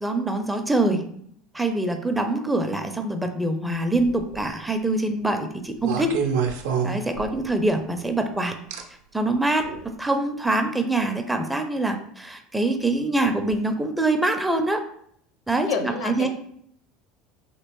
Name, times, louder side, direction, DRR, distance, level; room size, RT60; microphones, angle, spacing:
voice 1, 0.0-1.0 1.5-6.2 6.8-8.6 9.1-14.8 15.5-16.3, right 2 dB, 5° right, 6 dB, 0.4 m, -24 dB
sound 1, 4.0-4.5 5.8-7.6 8.7-8.8 9.6-9.8, right 6 dB, 65° right, 0.5 m, -27 dB
voice 2, 15.7-16.3, left 5 dB, 55° left, 4 dB, 0.6 m, -29 dB
3.0 x 2.9 x 2.9 m, 0.67 s
figure-of-eight pair, 70°, 0 cm